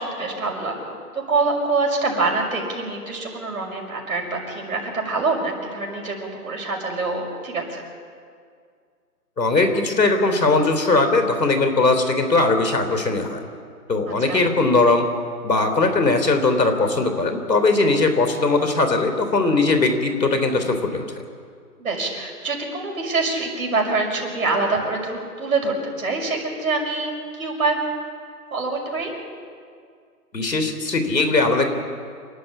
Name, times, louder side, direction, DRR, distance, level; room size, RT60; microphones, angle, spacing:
voice 1, 0.0-7.8 14.2-14.4 21.8-27.8 28.5-29.1, right 3 dB, 60° right, 0 dB, 6.0 m, -25 dB
voice 2, 9.4-13.4 13.9-15.1 15.4-21.1 30.3-31.6, left 3 dB, 90° left, 7 dB, 3.5 m, -19 dB
27.5 x 13.0 x 8.5 m, 2.1 s
hypercardioid pair, 165°, 48 cm